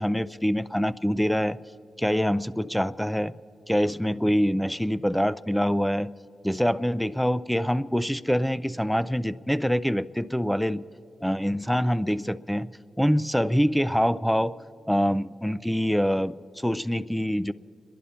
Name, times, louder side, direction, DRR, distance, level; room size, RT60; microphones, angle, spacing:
voice 1, 0.0-1.6 2.0-3.3 3.7-6.1 6.4-10.8 11.2-12.7 13.0-14.5 14.9-17.5, equal, 5° left, 16 dB, 0.4 m, -25 dB
28.5 x 11.0 x 4.3 m, 2.6 s
cardioid pair, 50°, 0 cm